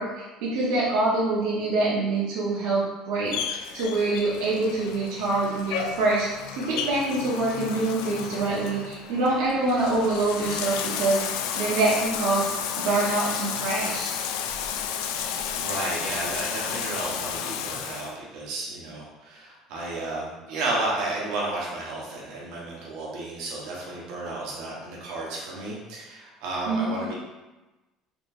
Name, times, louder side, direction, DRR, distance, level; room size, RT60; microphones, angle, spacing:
voice 1, 0.0-3.3 3.7-12.5 12.8-14.1 26.7-27.1, right 2 dB, 90° right, -6 dB, 0.9 m, -25 dB
Bathtub (filling or washing), 3.3-18.1, left 8 dB, 85° left, 0.3 m, -32 dB
voice 2, 15.5-27.1, right 2 dB, 70° right, -4 dB, 1.1 m, -32 dB
4.4 x 2.9 x 2.7 m, 1.1 s
cardioid pair, 160°, 0 cm